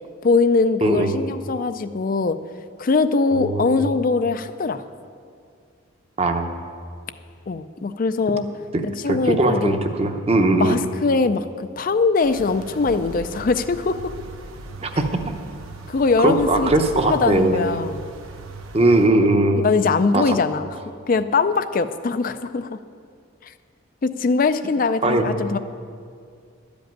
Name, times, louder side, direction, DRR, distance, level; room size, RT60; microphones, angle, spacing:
voice 1, 0.2-2.4 2.8-4.8 7.5-8.5 8.8-9.8 10.6-14.1 15.9-16.7 17.1-18.1 19.6-20.7 21.1-22.8 24.0-25.6, left 4 dB, 40° left, 11 dB, 0.4 m, -21 dB
voice 2, 0.8-1.2 3.3-3.9 6.2-6.5 9.1-10.8 14.8-15.1 16.2-17.8 18.7-19.7 20.1-20.4 25.0-25.4, right 2 dB, 30° right, 6 dB, 0.7 m, -20 dB
sound 1, 12.2-19.1, right 2 dB, 80° right, 1.1 m, -38 dB
12.5 x 5.3 x 9.1 m, 2.2 s
head